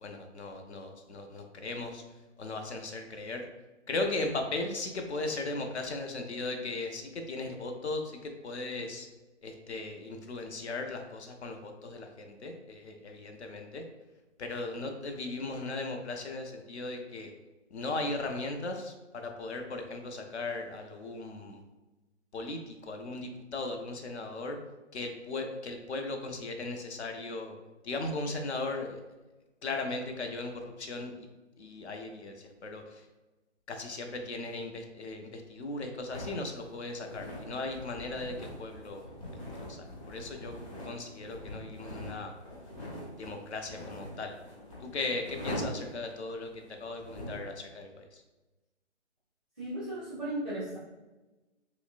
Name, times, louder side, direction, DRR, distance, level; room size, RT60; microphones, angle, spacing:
voice 1, 0.0-2.0 2.4-3.5 3.9-9.1 9.4-13.8 14.4-17.3 17.7-21.6 22.3-24.6 24.9-27.5 27.8-29.0 29.6-31.3 31.6-33.1 33.7-39.4 39.7-40.5 40.8-42.3 43.2-44.4 44.8-46.5 46.8-48.2, left 2 dB, 65° left, 4 dB, 0.7 m, -37 dB
sound 1, 36.1-47.5, equal, 30° left, 0.9 m, -43 dB
voice 2, 49.6-50.8, right 1 dB, ahead, -10 dB, 0.5 m, -35 dB
5.6 x 2.1 x 2.4 m, 1.1 s
figure-of-eight pair, 150°, 36 cm